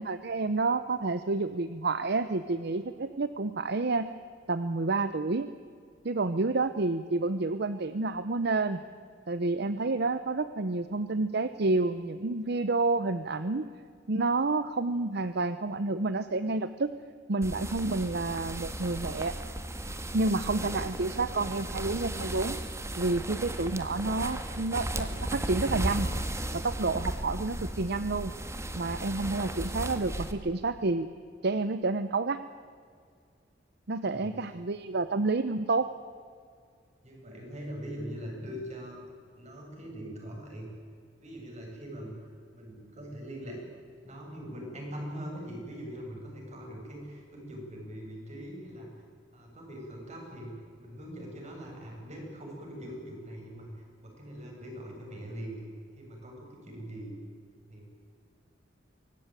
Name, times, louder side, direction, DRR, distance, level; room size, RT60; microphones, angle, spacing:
voice 1, 0.0-4.1 4.5-5.5 6.0-8.8 9.3-13.7 14.1-16.9 17.3-19.3 20.1-22.6 23.0-26.1 26.5-28.3 28.7-31.1 31.4-32.4 33.9-35.9, right 3 dB, 60° right, 12 dB, 0.8 m, -29 dB
sound 1, 17.4-30.3, right 1 dB, 15° right, 1.7 m, -35 dB
voice 2, 34.0-34.4 37.0-39.0 39.4-40.7 41.2-43.6 44.0-48.9 49.3-50.5 50.8-55.6 56.0-57.1 57.7-57.9, equal, 40° right, 0 dB, 7.4 m, -42 dB
24.0 x 18.0 x 9.2 m, 2.1 s
head